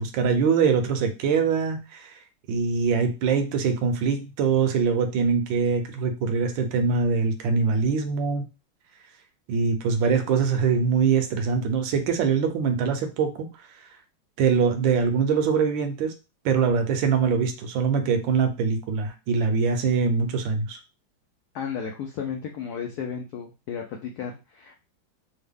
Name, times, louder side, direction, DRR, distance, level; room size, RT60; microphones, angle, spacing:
voice 1, 0.0-2.1 2.5-8.4 9.5-13.5 14.4-16.1 16.4-20.8, right 5 dB, 75° right, 6 dB, 1.3 m, -23 dB
voice 2, 21.5-24.8, left 7 dB, 85° left, 2 dB, 0.8 m, -34 dB
3.4 x 2.1 x 3.5 m, 0.29 s
omnidirectional pair, 2.2 m